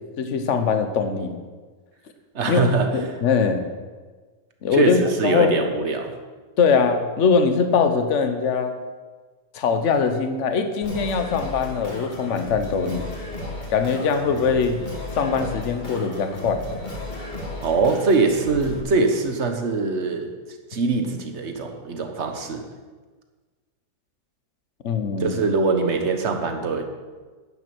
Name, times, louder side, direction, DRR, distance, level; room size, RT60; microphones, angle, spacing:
voice 1, 0.2-1.4 2.4-2.7 2.9-3.7 4.6-5.5 6.6-8.8 9.5-13.1 13.7-14.8 15.1-16.6 24.8-25.4, left 5 dB, 55° left, 7 dB, 1.3 m, -22 dB
voice 2, 2.3-3.0 4.7-6.2 17.6-20.3 20.7-22.7 25.2-26.8, right 4 dB, 50° right, 5 dB, 1.5 m, -22 dB
Singing, 10.8-18.8, left 1 dB, 30° left, 2.1 m, -34 dB
11.0 x 9.6 x 6.2 m, 1.4 s
omnidirectional pair, 1.6 m